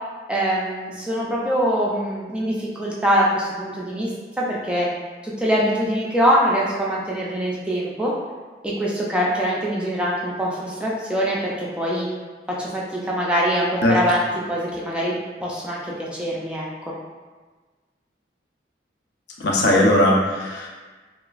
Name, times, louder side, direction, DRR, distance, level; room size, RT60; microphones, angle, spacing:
voice 1, 0.3-4.1 4.4-4.9 5.2-8.1 8.6-12.1 12.6-15.1 15.4-16.9, equal, 5° right, -5 dB, 0.3 m, -23 dB
voice 2, 19.4-20.7, left 1 dB, 75° left, -2 dB, 0.5 m, -18 dB
2.9 x 2.4 x 2.3 m, 1.3 s
head